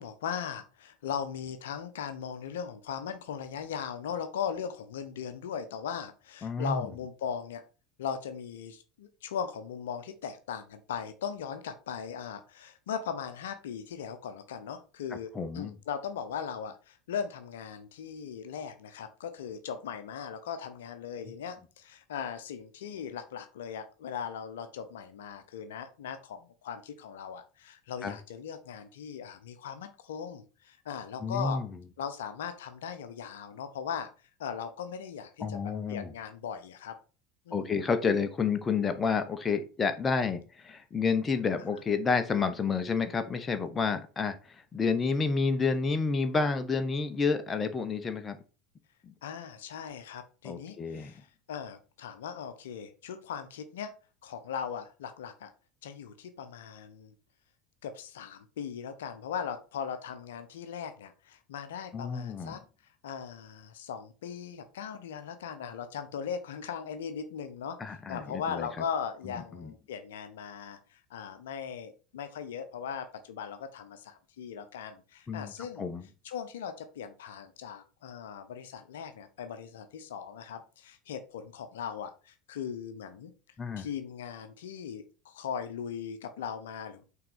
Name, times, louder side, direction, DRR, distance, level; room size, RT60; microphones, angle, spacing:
voice 1, 0.0-7.6 8.0-31.6 32.0-34.1 34.4-35.6 35.9-37.0 37.5-37.7 49.2-53.9 54.2-55.5 55.8-57.1 57.8-62.6 63.0-75.9 76.2-83.3 83.8-87.0, left 7 dB, 65° left, 8 dB, 0.8 m, -39 dB
voice 2, 6.4-6.8 15.3-15.7 28.0-28.1 31.2-31.7 35.4-36.1 37.5-48.4 49.0-49.1 50.4-51.1 61.9-62.6 67.8-68.7 69.6-69.7 75.3-75.5 75.8-76.0 83.6-83.8, left 5 dB, 25° left, 8 dB, 0.9 m, -30 dB
5.9 x 3.9 x 5.0 m, 0.34 s
figure-of-eight pair, 75°, 0 cm